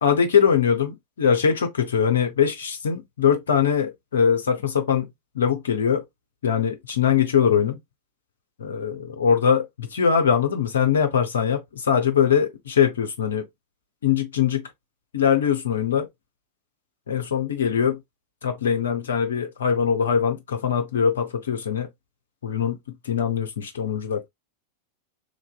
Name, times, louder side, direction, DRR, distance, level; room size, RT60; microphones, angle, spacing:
voice 1, 0.0-5.1 5.3-6.0 6.4-7.8 8.6-13.4 14.0-14.6 15.1-16.1 17.1-18.0 18.4-21.9 22.4-22.8 23.0-24.3, left 7 dB, 65° left, 0.5 m, -22 dB
3.2 x 2.5 x 2.2 m
figure-of-eight pair, 90°, 0 cm